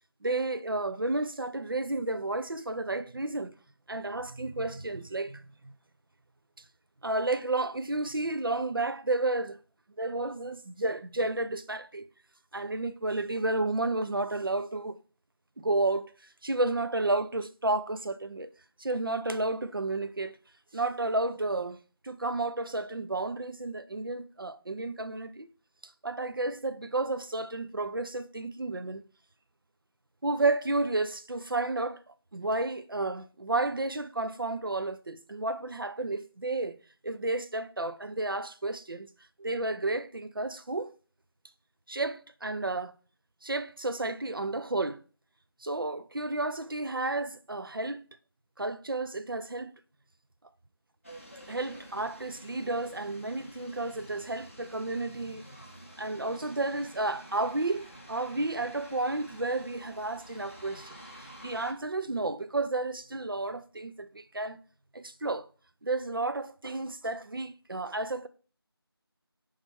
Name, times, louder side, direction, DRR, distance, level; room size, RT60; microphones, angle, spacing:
voice 1, 0.2-3.6 3.9-5.7 7.0-9.6 10.0-12.1 12.5-15.0 15.6-16.1 16.4-18.5 18.8-20.4 20.7-21.8 22.0-25.5 25.8-29.0 30.2-32.0 32.3-39.1 39.4-40.9 41.9-42.9 43.4-45.0 45.6-48.0 48.6-49.7 51.5-55.5 56.0-64.6 64.9-65.5 65.8-68.3, right 2 dB, 60° right, 0.4 m, -32 dB
sound 1, 51.0-61.7, equal, 35° left, 0.7 m, -50 dB
4.2 x 3.1 x 3.6 m
figure-of-eight pair, 175°, 13 cm